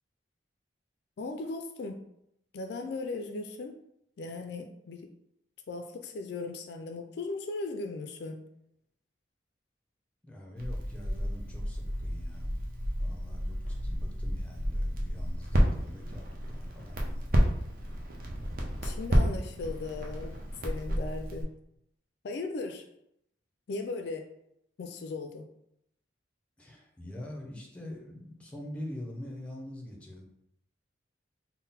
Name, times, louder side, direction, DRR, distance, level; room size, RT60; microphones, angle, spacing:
voice 1, 1.2-2.0 2.5-3.7 4.2-5.1 5.7-8.4 18.8-20.3 20.6-21.5 22.2-22.8 23.7-24.3 24.8-25.5, left 3 dB, 60° left, 5 dB, 0.3 m, -37 dB
voice 2, 10.2-12.5 13.0-17.3 26.6-30.2, left 1 dB, 5° left, 0 dB, 0.6 m, -44 dB
Crackle, 10.6-21.4, equal, 50° right, 0.7 m, -31 dB
3.7 x 2.1 x 4.0 m, 0.76 s
head